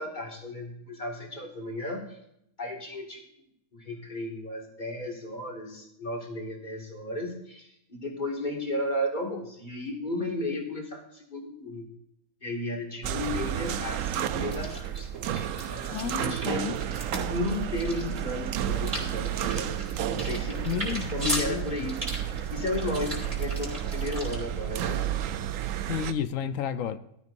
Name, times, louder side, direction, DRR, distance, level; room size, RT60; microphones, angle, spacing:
voice 1, 0.0-2.2 2.6-3.2 3.7-11.9 12.4-16.6 17.3-19.8 20.1-22.0 22.3-25.0, left 1 dB, 30° left, 2.3 m, -34 dB
sound 1, 13.0-26.1, right 10 dB, 70° right, 0.9 m, -31 dB
sound 2, 14.4-24.4, right 1 dB, 30° right, 2.5 m, -39 dB
voice 2, 15.8-16.8 17.1-17.3 20.7-21.8 25.9-27.0, left 8 dB, 70° left, 1.0 m, -32 dB
15.0 x 12.0 x 2.6 m
omnidirectional pair, 1.5 m